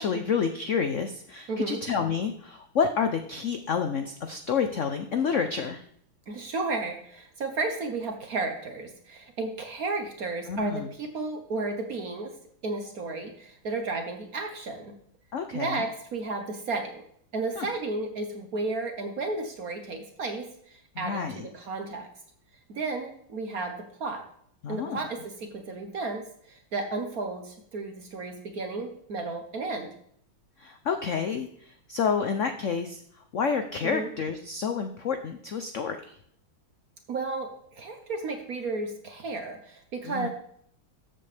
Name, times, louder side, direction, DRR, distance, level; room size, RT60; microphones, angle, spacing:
voice 1, 0.0-5.8 10.5-10.9 15.3-15.9 17.6-17.7 21.0-21.5 24.6-25.0 30.6-33.0 33.3-36.2 40.0-40.3, left 6 dB, 90° left, 7 dB, 0.6 m, -29 dB
voice 2, 1.5-1.8 6.3-12.3 12.6-14.9 15.5-17.0 17.3-22.1 22.7-23.7 24.0-24.2 24.7-29.9 33.8-34.1 37.1-40.3, right 3 dB, 50° right, 5 dB, 1.3 m, -33 dB
13.0 x 7.8 x 3.4 m, 0.66 s
omnidirectional pair, 2.2 m